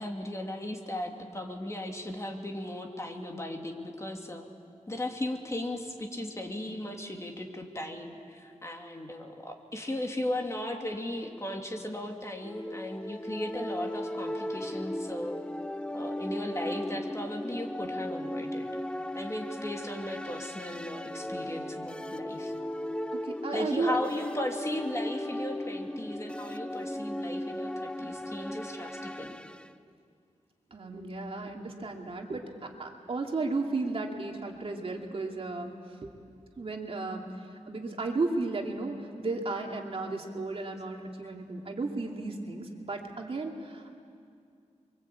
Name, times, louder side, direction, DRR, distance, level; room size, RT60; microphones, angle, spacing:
voice 1, 0.0-4.5 4.9-15.4 15.9-18.7 19.1-22.5 23.5-29.4, left 1 dB, 25° left, 2 dB, 2.6 m, -36 dB
sound 1, 12.4-29.7, left 1 dB, 10° left, 0.7 m, -37 dB
voice 2, 23.2-24.0 30.7-35.7 36.0-36.1 36.6-37.3 37.7-44.0, right 3 dB, 50° right, 1 dB, 2.7 m, -34 dB
29.0 x 24.0 x 8.6 m, 2.3 s
wide cardioid pair, 110°, 12 cm